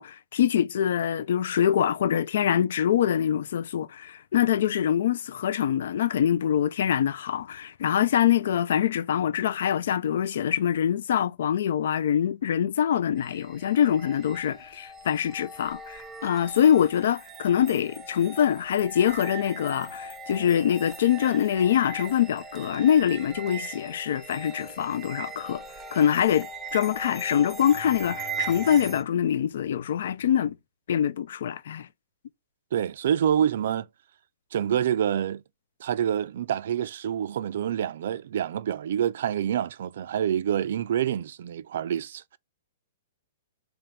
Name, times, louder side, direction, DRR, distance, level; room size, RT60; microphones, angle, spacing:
voice 1, 0.0-25.6 25.9-30.6 30.9-31.9, left 9 dB, 65° left, 0.3 m, -24 dB
sound 1, 13.2-29.0, right 4 dB, 15° right, 0.7 m, -40 dB
voice 2, 32.7-33.9 34.5-35.4 35.8-42.4, right 9 dB, 60° right, 0.3 m, -27 dB
3.5 x 2.9 x 3.3 m
hypercardioid pair, 115°, 0 cm